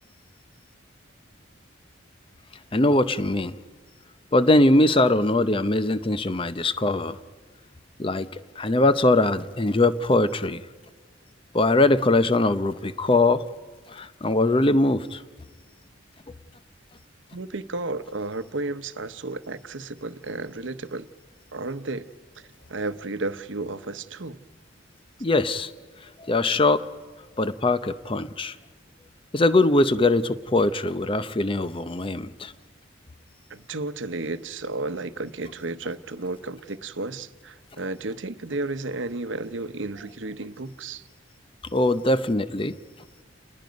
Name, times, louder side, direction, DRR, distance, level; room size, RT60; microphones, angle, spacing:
voice 1, 2.7-3.5 4.3-7.2 8.0-10.6 11.5-13.4 13.9-15.2 25.2-25.7 26.2-26.8 27.4-28.5 29.3-32.5 41.7-42.8, left 2 dB, 25° left, 13 dB, 0.7 m, -21 dB
voice 2, 17.3-21.1 21.5-22.1 22.7-24.4 33.5-41.0, right 2 dB, 75° right, 11 dB, 0.9 m, -33 dB
29.5 x 20.0 x 5.2 m, 1.5 s
head